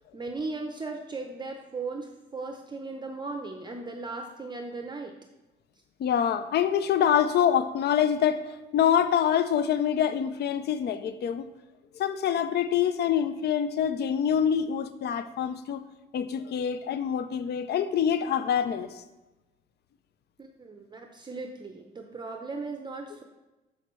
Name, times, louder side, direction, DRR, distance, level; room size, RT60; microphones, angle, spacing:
voice 1, 0.1-5.1 20.4-23.2, right 3 dB, 20° right, 3 dB, 0.6 m, -37 dB
voice 2, 6.0-11.5 12.0-15.8 16.1-18.9, left 9 dB, 55° left, 12 dB, 0.4 m, -25 dB
6.3 x 5.8 x 3.0 m, 1.1 s
cardioid pair, 90°, 20 cm